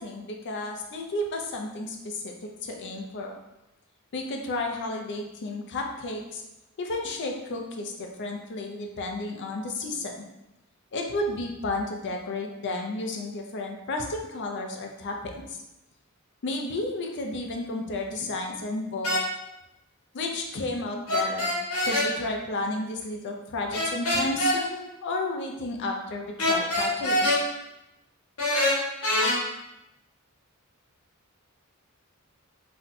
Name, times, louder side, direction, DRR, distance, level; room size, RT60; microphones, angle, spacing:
voice 1, 0.0-3.3 4.1-6.4 6.8-10.3 10.9-15.6 16.4-19.2 20.1-21.5 21.8-27.3, left 2 dB, 55° left, 2 dB, 0.5 m, -32 dB
sound 1, 19.0-19.2 21.1-22.1 23.7-24.6 26.4-27.4 28.4-29.4, left 1 dB, 85° left, 1.0 m, -24 dB
2.6 x 2.2 x 4.0 m, 0.92 s
head